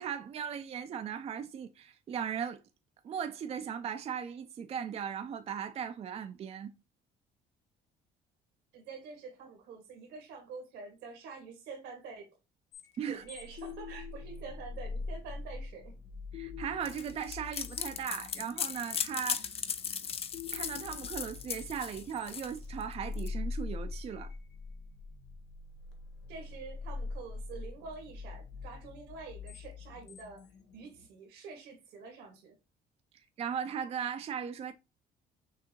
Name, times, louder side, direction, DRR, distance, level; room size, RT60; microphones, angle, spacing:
voice 1, 0.0-2.6 3.0-6.7 13.0-13.2 16.3-19.5 20.5-24.3 33.4-34.7, right 8 dB, 35° right, 0.4 m, -37 dB
voice 2, 8.7-12.3 13.1-15.9 26.3-30.4 30.7-32.6, right 5 dB, 90° right, 1.7 m, -47 dB
sound 1, 12.7-31.1, left 4 dB, 90° left, 1.1 m, -43 dB
sound 2, 16.9-23.3, left 7 dB, 35° left, 0.5 m, -37 dB
6.1 x 2.6 x 2.9 m
cardioid pair, 110°, 17 cm